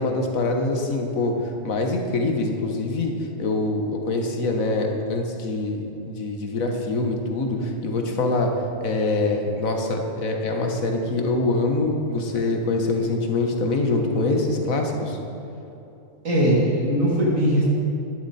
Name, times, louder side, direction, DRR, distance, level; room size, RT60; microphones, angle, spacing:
voice 1, 0.0-1.4 1.6-3.1 3.4-8.5 8.8-15.2, left 2 dB, 85° left, 2 dB, 1.7 m, -24 dB
voice 2, 16.2-17.6, equal, 75° right, -5 dB, 2.7 m, -21 dB
12.0 x 11.0 x 4.3 m, 2.8 s
omnidirectional pair, 1.4 m